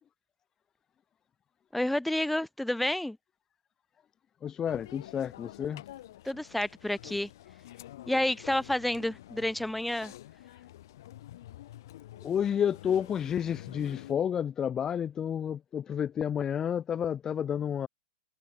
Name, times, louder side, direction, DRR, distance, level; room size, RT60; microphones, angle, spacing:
voice 1, 1.7-3.2 6.2-7.3 8.1-10.1, left 1 dB, 5° left, 3.6 m, -30 dB
voice 2, 4.4-5.8 12.2-17.9, left 8 dB, 25° left, 4.8 m, -30 dB
sound 1, 4.7-14.1, left 14 dB, 70° left, 7.5 m, -48 dB
hypercardioid pair, 120°, 2 cm